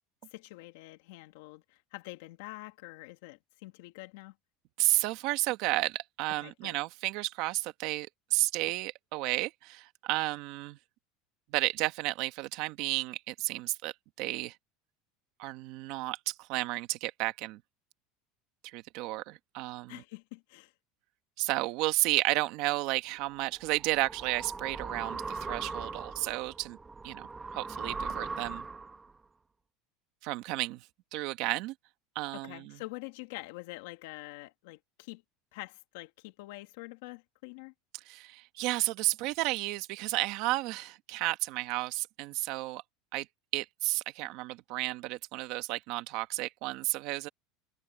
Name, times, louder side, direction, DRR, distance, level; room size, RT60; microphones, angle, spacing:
voice 1, 0.3-4.3 6.4-6.8 19.9-20.7 32.3-35.2 35.5-37.7, left 21 dB, 70° left, 2.2 m, -46 dB
voice 2, 4.8-10.8 11.5-14.5 15.4-17.6 18.6-20.0 21.4-26.8 27.0-28.6 30.2-30.8 31.1-31.7 32.1-32.8 38.1-42.8 43.1-43.3 43.5-47.3, right 19 dB, 50° right, 1.4 m, -32 dB
sound 1, 23.3-29.1, right 4 dB, 10° right, 1.3 m, -40 dB
supercardioid pair, 170°, 0 cm